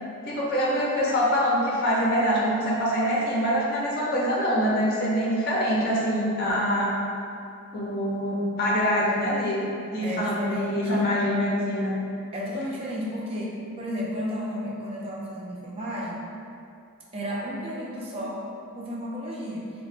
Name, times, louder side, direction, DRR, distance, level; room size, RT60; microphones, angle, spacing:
voice 1, 0.2-6.9 7.7-12.0, equal, 45° left, -5 dB, 0.5 m, -24 dB
voice 2, 10.0-11.1 12.3-16.2 17.1-18.4 18.7-19.7, equal, 25° right, -4 dB, 0.4 m, -33 dB
2.8 x 2.0 x 3.2 m, 2.6 s
head